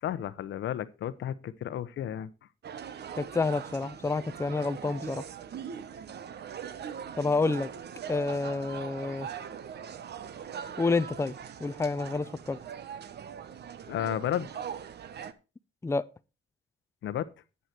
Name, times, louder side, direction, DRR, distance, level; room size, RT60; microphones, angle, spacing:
voice 1, 0.0-2.3 13.9-14.5 17.0-17.3, left 10 dB, 70° left, 0.9 m, -32 dB
sound 1, 2.6-15.3, right 8 dB, 55° right, 1.0 m, -41 dB
voice 2, 3.1-5.2 7.1-7.7 8.1-9.3 10.8-11.3 11.6-12.6 15.8-16.1, left 3 dB, 15° left, 0.6 m, -29 dB
9.8 x 9.4 x 4.5 m
cardioid pair, 90°, 20 cm